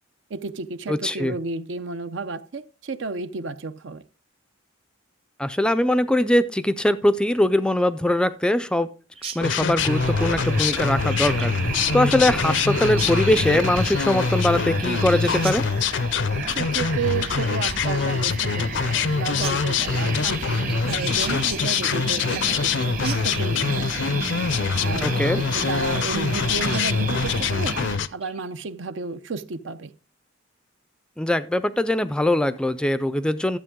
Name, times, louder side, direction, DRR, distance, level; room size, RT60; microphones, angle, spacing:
voice 1, 0.3-4.0 16.5-23.9 24.7-27.8 28.1-29.9, right 4 dB, 70° right, 0.6 m, -32 dB
voice 2, 0.9-1.3 5.4-8.9 9.3-15.6 25.0-25.4 31.2-33.6, left 1 dB, 5° left, 0.4 m, -22 dB
Chirp tweet, 9.1-26.4 26.7-26.9 27.2-27.6 28.0-28.4, right 6 dB, 30° right, 0.9 m, -41 dB
sound 1, 9.4-28.1, left 5 dB, 65° left, 0.5 m, -24 dB
sound 2, 9.8-28.0, right 3 dB, 45° right, 1.2 m, -31 dB
12.5 x 7.8 x 3.7 m
head